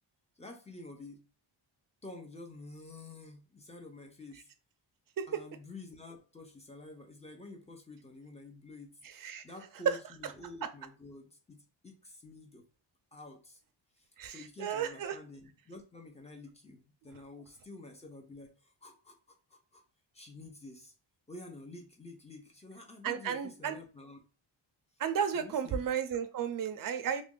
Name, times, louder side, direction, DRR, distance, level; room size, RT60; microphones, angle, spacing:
voice 1, 0.4-1.2 2.0-4.5 5.3-9.0 9.4-12.6 13.1-13.6 14.0-19.8 20.1-20.9 21.3-24.2 25.3-25.8, left 2 dB, 15° left, 3 dB, 0.6 m, -49 dB
voice 2, 9.0-9.4 9.9-10.0 10.2-10.3 14.2-15.2 23.0-23.8 25.0-27.2, right 8 dB, 45° right, 8 dB, 0.5 m, -33 dB
3.0 x 2.5 x 3.7 m, 0.35 s
wide cardioid pair, 165°, 49 cm